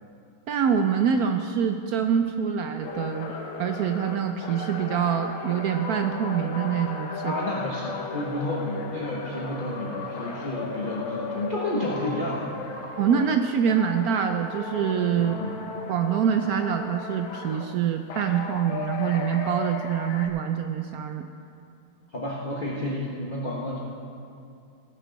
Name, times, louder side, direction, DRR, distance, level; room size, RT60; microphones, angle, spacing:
voice 1, 0.5-3.3 3.6-7.3 13.0-15.4 15.9-21.3, right 8 dB, 85° right, 6 dB, 0.8 m, -25 dB
sound 1, 2.8-13.4 13.7-17.7 18.1-20.3, left 4 dB, 85° left, 2.0 m, -36 dB
voice 2, 7.2-12.6 15.2-15.5 22.1-23.8, left 1 dB, 30° left, -4 dB, 1.2 m, -31 dB
18.5 x 10.5 x 4.0 m, 2.5 s
omnidirectional pair, 2.2 m